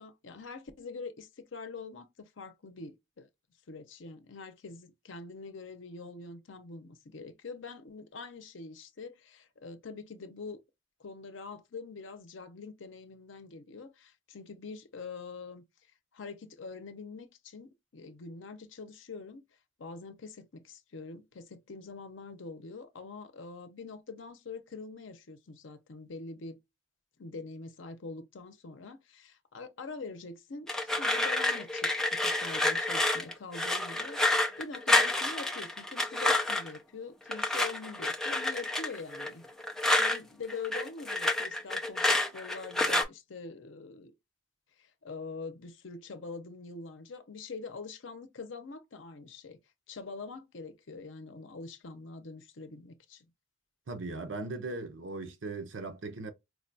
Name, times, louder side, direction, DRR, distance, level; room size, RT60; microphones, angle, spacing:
voice 1, 0.0-3.3 3.7-10.6 11.0-15.6 16.1-19.4 19.8-26.6 27.2-34.2 34.6-39.4 40.0-44.1 44.8-49.6 49.9-53.2, left 4 dB, 80° left, 0.6 m, -44 dB
sound 1, 30.7-36.8 37.3-40.2 40.5-43.0, left 2 dB, 5° left, 0.4 m, -29 dB
voice 2, 53.9-56.3, right 3 dB, 80° right, 0.7 m, -38 dB
4.7 x 2.2 x 2.5 m
head